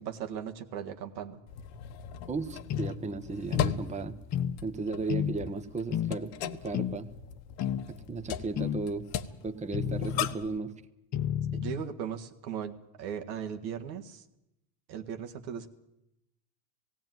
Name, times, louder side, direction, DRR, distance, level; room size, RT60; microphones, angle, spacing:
voice 1, 0.0-1.4 11.5-14.2 14.9-15.7, right 8 dB, 90° right, 5 dB, 1.8 m, -38 dB
sound 1, 1.5-10.6, left 10 dB, 60° left, 1.2 m, -38 dB
voice 2, 2.3-4.2 4.6-7.1 7.9-9.1 9.4-10.7, right 4 dB, 15° right, 8 dB, 1.0 m, -35 dB
sound 2, 2.7-2.9 3.5-3.8 4.3-4.6 5.1-5.4 5.9-6.2 6.7-7.0 7.6-7.9 8.6-8.8 9.7-10.4 11.1-11.8, left 9 dB, 35° left, 0.9 m, -31 dB
17.5 x 16.5 x 9.3 m, 0.86 s
supercardioid pair, 105°, 50 cm